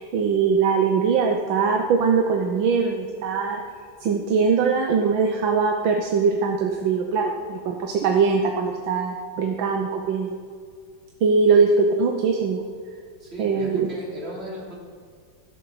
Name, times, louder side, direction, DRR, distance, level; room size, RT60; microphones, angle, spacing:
voice 1, 0.0-3.6 4.0-10.4 11.2-12.7 13.4-13.9, right 5 dB, 85° right, 3 dB, 1.7 m, -21 dB
voice 2, 13.2-14.8, right 1 dB, 35° right, -4 dB, 3.4 m, -37 dB
13.5 x 11.5 x 4.9 m, 2.1 s
omnidirectional pair, 2.0 m